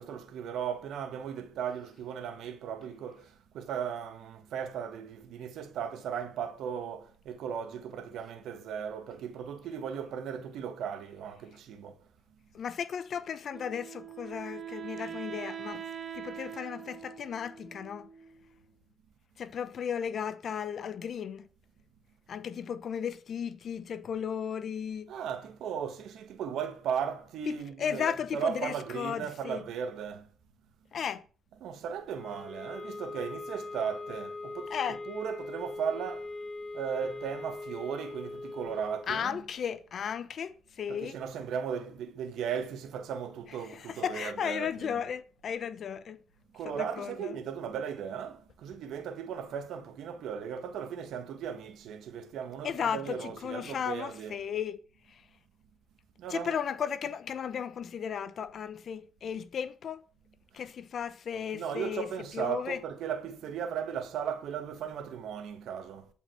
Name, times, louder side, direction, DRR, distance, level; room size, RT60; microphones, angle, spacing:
voice 1, 0.0-12.0 25.1-30.3 31.5-36.3 36.7-39.4 40.9-45.0 46.5-54.4 56.2-56.6 61.5-66.1, right 7 dB, 80° right, 1.8 m, -37 dB
voice 2, 12.5-15.8 16.1-18.1 19.4-21.5 22.3-25.1 27.5-29.6 30.9-31.2 34.7-35.0 39.1-41.2 43.7-46.2 46.6-47.3 52.6-54.8 55.1-55.2 56.3-60.0 60.5-62.8, left 7 dB, 55° left, 1.0 m, -35 dB
Wind instrument woodwind instrument, 13.5-18.6, right 9 dB, 45° right, 1.5 m, -43 dB
sound 1, 32.1-39.1, left 2 dB, 20° left, 3.6 m, -41 dB
13.0 x 5.7 x 8.0 m
cardioid pair, 90°, 0 cm